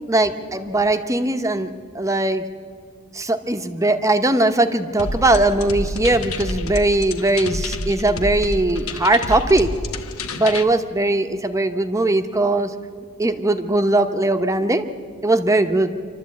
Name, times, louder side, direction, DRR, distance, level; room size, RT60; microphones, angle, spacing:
voice 1, 0.1-1.7 1.9-2.4 3.1-9.7 10.3-12.7 13.2-14.8 15.2-15.9, right 2 dB, 15° right, 8 dB, 0.9 m, -19 dB
sound 1, 5.0-10.6, left 1 dB, 70° left, 1.2 m, -28 dB
26.5 x 12.5 x 8.5 m, 2.3 s
head